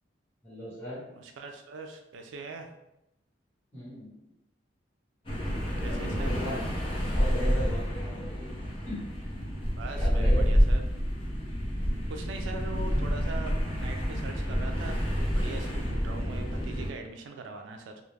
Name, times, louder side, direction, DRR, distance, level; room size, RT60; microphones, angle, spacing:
voice 1, 0.4-1.0 3.7-4.1 5.8-6.6 7.0-8.5 8.9-9.0 10.0-10.4, equal, 10° left, -11 dB, 1.2 m, -37 dB
voice 2, 1.1-2.7 5.8-6.3 9.8-10.8 12.1-18.0, right 3 dB, 80° right, 4 dB, 0.3 m, -41 dB
sound 1, 5.2-16.9, equal, 30° left, 0.6 m, -28 dB
2.3 x 2.0 x 3.2 m, 0.86 s
head